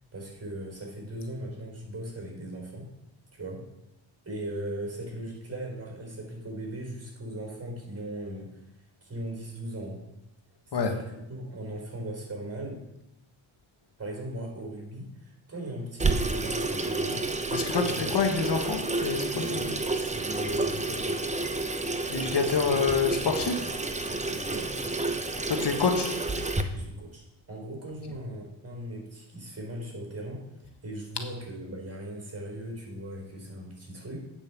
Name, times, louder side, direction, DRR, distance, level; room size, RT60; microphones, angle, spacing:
voice 1, 0.1-2.9 3.3-3.6 4.2-8.6 9.0-10.0 10.7-12.8 14.0-17.3 17.8-18.2 19.4-21.2 22.7-23.0 24.0-25.2 26.7-30.4 30.8-34.2, right 1 dB, 30° right, 1 dB, 4.2 m, -39 dB
Water tap faucet / Sink (filling or washing), 16.0-26.6, right 3 dB, 15° right, 0.8 m, -30 dB
voice 2, 17.5-19.7 22.1-23.6 25.5-26.1, left 5 dB, 55° left, 4 dB, 1.4 m, -27 dB
9.0 x 5.2 x 7.0 m, 0.93 s
cardioid pair, 80°, 48 cm